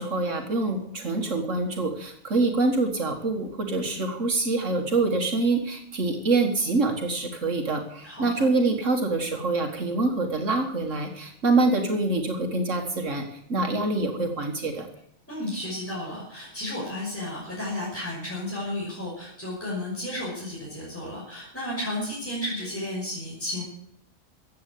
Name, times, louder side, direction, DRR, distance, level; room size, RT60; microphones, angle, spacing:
voice 1, 0.0-14.9, right 3 dB, 70° right, 4 dB, 2.1 m, -25 dB
voice 2, 8.0-8.5 15.3-23.6, left 1 dB, 10° left, -6 dB, 5.9 m, -33 dB
14.5 x 8.7 x 8.4 m, 0.71 s
omnidirectional pair, 1.3 m